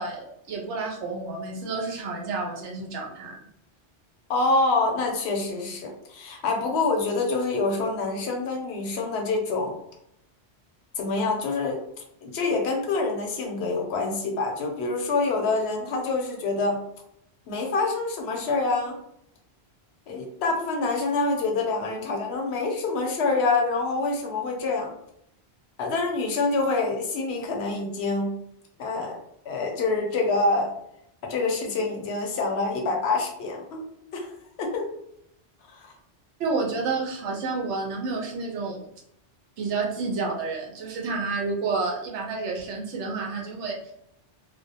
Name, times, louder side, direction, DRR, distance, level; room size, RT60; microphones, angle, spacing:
voice 1, 0.0-3.4 36.4-38.8 39.6-43.9, right 4 dB, 85° right, 0 dB, 0.9 m, -30 dB
voice 2, 4.3-9.8 11.0-11.8 12.2-16.8 17.5-19.0 20.1-24.9 25.8-28.3 28.8-29.2 29.5-30.7 31.2-33.9 34.1-34.3 34.6-34.9 35.8-35.9, left 3 dB, 75° left, 2 dB, 0.8 m, -26 dB
2.5 x 2.1 x 2.6 m, 0.75 s
omnidirectional pair, 1.2 m